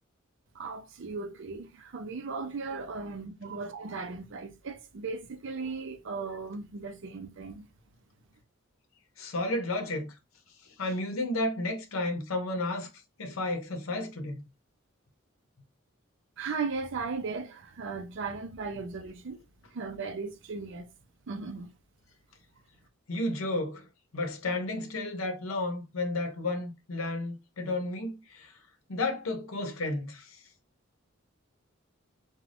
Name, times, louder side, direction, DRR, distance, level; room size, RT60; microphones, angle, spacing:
voice 1, 0.5-7.6 16.4-19.4 19.7-20.9 21.3-21.7, right 4 dB, 65° right, 0.5 m, -37 dB
voice 2, 9.2-10.1 10.8-12.9 13.2-14.4 23.1-23.9 24.1-28.5 28.9-30.4, left 2 dB, 85° left, 0.7 m, -32 dB
2.5 x 2.2 x 3.2 m
head